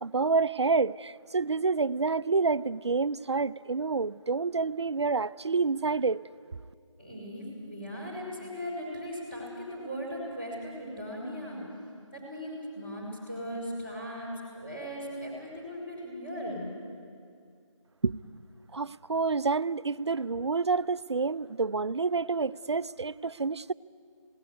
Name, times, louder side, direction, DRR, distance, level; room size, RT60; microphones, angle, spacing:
voice 1, 0.0-6.2 18.0-18.2 18.7-23.7, right 4 dB, 55° right, 16 dB, 0.5 m, -28 dB
voice 2, 7.0-11.6 12.1-16.7, equal, 20° left, -4 dB, 5.4 m, -38 dB
19.5 x 17.5 x 9.6 m, 2.3 s
figure-of-eight pair, 170°, 16 cm